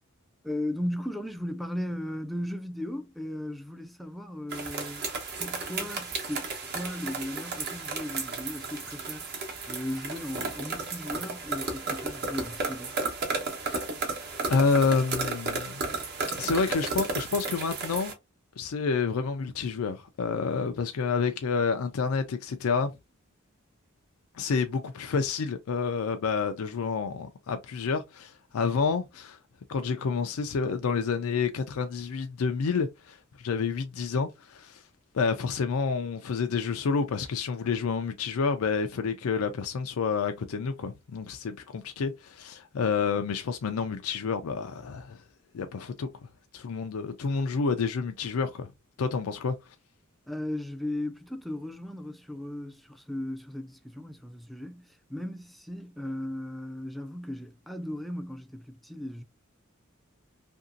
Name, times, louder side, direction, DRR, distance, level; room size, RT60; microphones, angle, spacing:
voice 1, 0.4-5.1 5.4-13.0 50.3-59.2, left 1 dB, ahead, 0.4 m, -36 dB
sound 1, 4.5-18.1, right 3 dB, 50° right, 0.9 m, -33 dB
voice 2, 14.5-16.0 16.4-18.1 18.6-22.9 24.3-29.4 29.7-34.8 35.1-45.2 45.5-46.1 46.5-48.7 49.0-49.6, left 5 dB, 90° left, 0.4 m, -29 dB
2.9 x 2.6 x 2.5 m
head